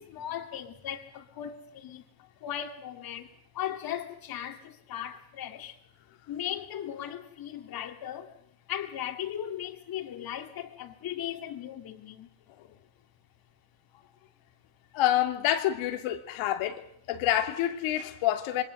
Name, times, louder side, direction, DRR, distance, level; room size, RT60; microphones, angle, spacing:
voice 1, 0.0-2.0 2.4-5.8 6.3-8.3 8.7-12.3, left 10 dB, 45° left, 2.7 m, -37 dB
voice 2, 14.9-16.8 17.1-18.6, left 12 dB, 75° left, 2.7 m, -27 dB
27.0 x 23.5 x 6.6 m
cardioid pair, 145°, 47 cm